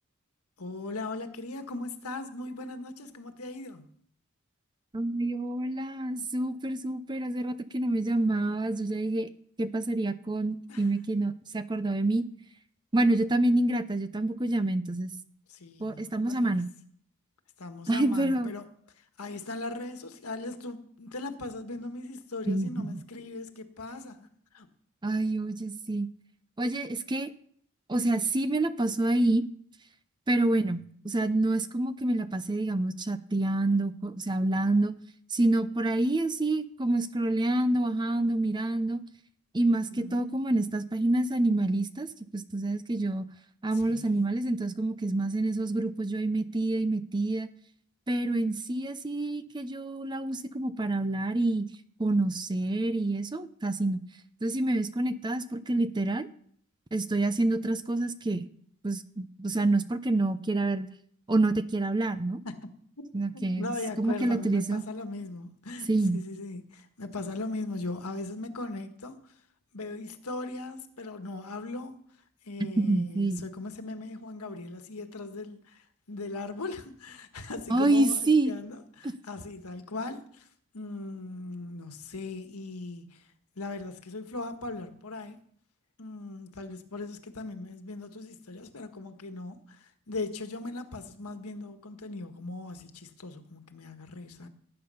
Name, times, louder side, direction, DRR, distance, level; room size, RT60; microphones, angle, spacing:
voice 1, 0.6-3.9 10.7-10.9 15.5-16.5 17.6-18.7 18.9-24.7 39.7-40.3 43.7-44.3 62.4-62.6 63.3-69.3 69.7-71.9 72.4-80.5 80.7-83.3 83.5-85.4 86.0-94.5, left 2 dB, 85° left, 1.5 m, -39 dB
voice 2, 4.9-9.3 9.6-12.2 12.9-15.1 15.8-16.7 17.9-18.5 22.5-22.9 25.0-26.1 26.6-27.3 27.9-29.4 30.3-35.0 35.3-39.0 39.5-42.1 42.3-43.3 43.6-47.5 48.1-51.7 52.0-54.0 54.4-56.3 56.9-58.5 58.8-60.9 61.3-62.4 63.1-64.8 65.9-66.2 72.8-73.4 77.7-78.6, right 2 dB, 20° right, 0.6 m, -27 dB
18.5 x 8.8 x 5.6 m
head